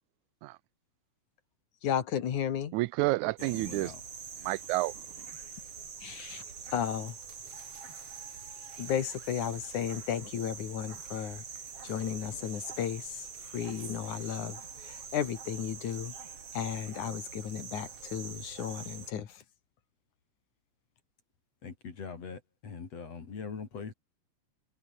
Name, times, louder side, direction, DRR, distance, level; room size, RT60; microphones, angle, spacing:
voice 1, 1.8-2.7 6.0-6.4 6.7-7.2 8.8-11.4 11.8-16.1 16.5-19.4, left 9 dB, 85° left, 3.5 m, -34 dB
voice 2, 2.7-3.9 4.4-5.0, right 19 dB, 85° right, 2.0 m, -30 dB
voice 3, 3.4-4.0 21.6-23.9, left 5 dB, 60° left, 4.4 m, -42 dB
sound 1, 3.4-19.1, right 6 dB, 55° right, 3.8 m, -45 dB
omnidirectional pair, 3.4 m